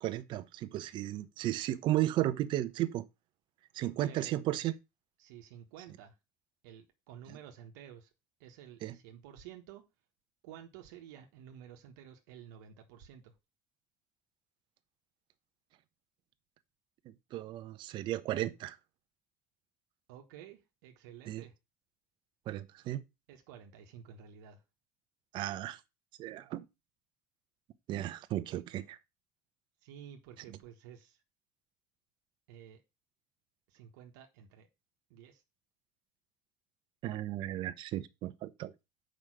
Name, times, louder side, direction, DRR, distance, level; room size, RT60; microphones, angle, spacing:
voice 1, 0.0-3.0 3.7-4.7 8.8-9.0 17.0-18.8 21.3-21.4 22.5-23.0 25.3-25.8 26.2-26.7 27.9-29.0 30.5-30.6 37.0-38.7, right 14 dB, 60° right, 0.9 m, -34 dB
voice 2, 4.0-4.4 5.2-6.1 6.6-8.1 8.4-9.8 10.4-13.3 20.1-21.5 23.3-24.6 29.8-31.2 32.5-32.8 33.7-34.7 35.1-35.4, right 9 dB, 90° right, 1.3 m, -52 dB
6.3 x 5.2 x 6.1 m
supercardioid pair, 110°, 9 cm